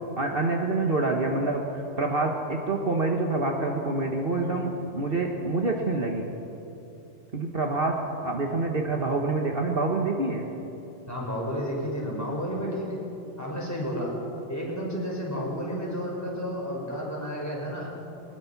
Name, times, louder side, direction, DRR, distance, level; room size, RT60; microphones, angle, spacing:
voice 1, 0.2-6.3 7.3-10.5, right 2 dB, 45° right, 1 dB, 1.6 m, -27 dB
voice 2, 11.1-13.0 13.4-14.1 14.5-17.9, equal, 10° left, -3 dB, 5.4 m, -31 dB
21.5 x 20.5 x 5.9 m, 2.9 s
omnidirectional pair, 1.3 m